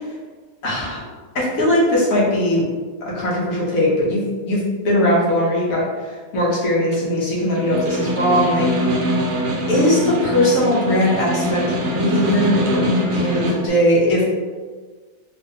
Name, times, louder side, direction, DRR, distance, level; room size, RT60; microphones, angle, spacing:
voice 1, 0.6-1.0 1.3-2.6 3.0-8.7 9.7-14.2, left 1 dB, 65° left, -6 dB, 1.3 m, -19 dB
Snare drum, 7.5-13.7, equal, 70° right, 0.9 m, -23 dB
3.4 x 2.5 x 2.7 m, 1.5 s
omnidirectional pair, 1.6 m